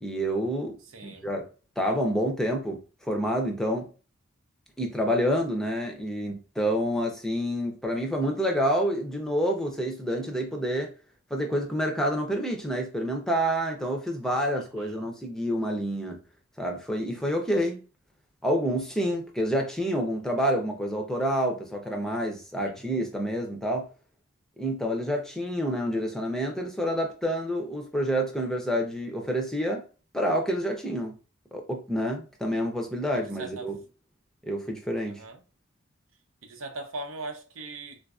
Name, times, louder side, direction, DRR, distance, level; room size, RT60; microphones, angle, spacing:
voice 1, 0.0-0.8 1.0-1.5 1.8-3.9 4.8-10.9 11.3-16.2 16.6-17.8 18.4-23.9 24.6-29.8 30.1-31.1 31.5-33.8 34.4-35.2, equal, ahead, 0.6 m, -28 dB
voice 2, 0.9-1.3 14.6-15.0 22.8-22.9 33.4-33.7 35.1-35.4 36.4-38.0, right 2 dB, 75° right, 0.7 m, -40 dB
3.8 x 2.5 x 2.3 m
head